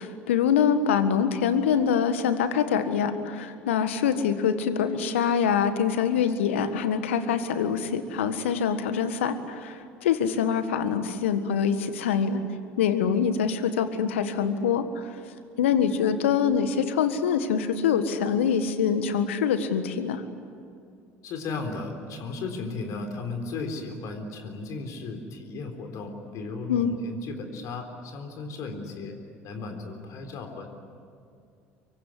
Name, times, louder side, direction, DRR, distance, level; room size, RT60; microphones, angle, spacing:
voice 1, 0.0-12.4 12.8-15.1 15.6-20.2 26.7-26.9, left 7 dB, 75° left, 10 dB, 1.6 m, -25 dB
voice 2, 21.2-29.2 29.4-30.7, left 3 dB, 50° left, 4 dB, 3.8 m, -35 dB
25.5 x 23.5 x 9.8 m, 2.3 s
figure-of-eight pair, 65°, 7 cm